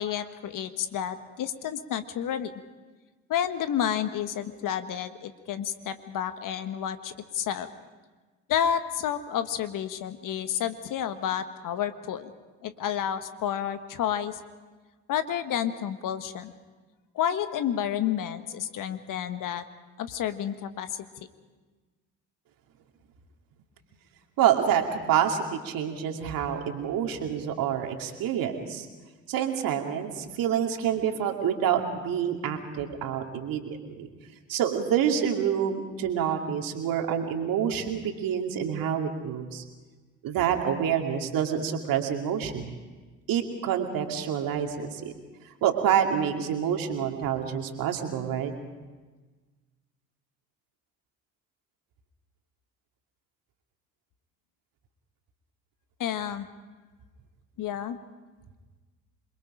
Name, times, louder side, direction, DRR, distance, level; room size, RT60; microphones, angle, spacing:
voice 1, 0.0-2.5 3.3-7.7 8.5-12.3 12.6-14.4 15.1-16.6 17.1-19.6 20.0-21.3 56.0-56.5 57.6-58.0, left 9 dB, 55° left, 10 dB, 1.5 m, -30 dB
voice 2, 24.4-28.9 29.3-34.1 34.5-39.6 40.2-42.8 43.3-45.1 45.6-48.5, right 9 dB, 60° right, 3 dB, 2.6 m, -27 dB
27.5 x 22.0 x 5.1 m, 1.3 s
hypercardioid pair, 55°, 38 cm